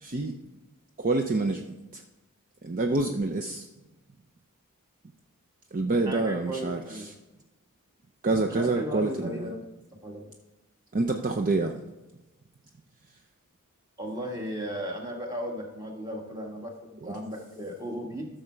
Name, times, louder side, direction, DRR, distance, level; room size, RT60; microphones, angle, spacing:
voice 1, 0.0-0.3 1.0-2.0 2.6-3.7 5.7-7.1 8.2-9.5 10.9-11.8 17.0-17.2, right 3 dB, 40° right, 5 dB, 0.5 m, -27 dB
voice 2, 6.1-7.1 8.5-9.7 10.0-10.3 14.0-18.3, equal, 15° right, 1 dB, 1.7 m, -36 dB
13.5 x 6.5 x 4.5 m, 1.0 s
head